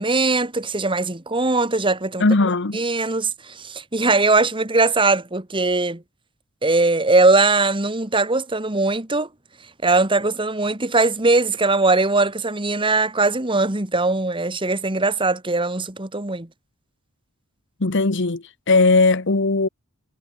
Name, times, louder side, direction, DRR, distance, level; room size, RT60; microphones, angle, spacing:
voice 1, 0.0-2.2 2.7-6.0 6.6-9.3 9.8-16.5, right 3 dB, 25° right, 1.8 m, -20 dB
voice 2, 2.2-2.8 17.8-19.7, left 3 dB, 55° left, 1.2 m, -18 dB
head